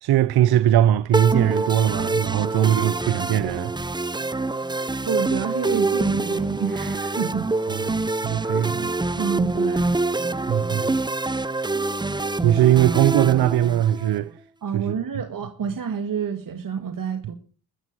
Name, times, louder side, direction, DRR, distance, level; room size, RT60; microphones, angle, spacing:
voice 1, 0.0-3.7 4.1-4.3 7.7-8.0 8.2-8.9 10.5-10.9 12.1-14.3 14.7-14.9, right 12 dB, 75° right, 0.8 m, -20 dB
sound 1, 1.1-14.2, right 2 dB, 10° right, 0.8 m, -25 dB
voice 2, 5.1-7.5 9.1-9.9 14.6-17.3, right 7 dB, 55° right, 2.0 m, -28 dB
14.0 x 8.3 x 9.5 m
supercardioid pair, 55°, 38 cm